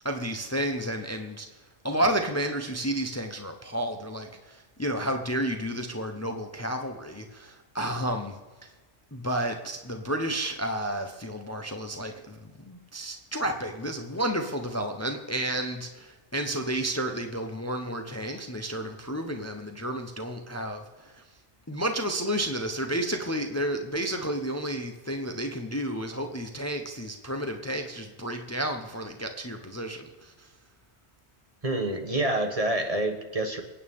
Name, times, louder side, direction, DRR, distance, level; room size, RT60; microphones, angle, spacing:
voice 1, 0.0-8.7 9.1-21.2 21.7-30.5, right 1 dB, 15° left, 5 dB, 0.9 m, -31 dB
voice 2, 31.6-33.6, right 1 dB, 30° right, 5 dB, 1.2 m, -27 dB
26.0 x 9.1 x 3.6 m, 1.3 s
omnidirectional pair, 1.2 m